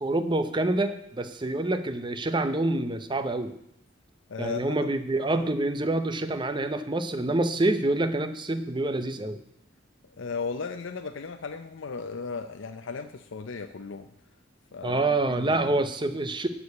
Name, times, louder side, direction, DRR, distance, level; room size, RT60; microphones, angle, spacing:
voice 1, 0.0-3.5 4.4-9.4 14.8-16.5, right 2 dB, 25° right, 10 dB, 0.6 m, -27 dB
voice 2, 4.3-4.9 5.3-5.5 10.0-14.1 14.7-15.8, left 4 dB, 65° left, 7 dB, 0.5 m, -36 dB
11.0 x 4.8 x 8.3 m, 0.74 s
head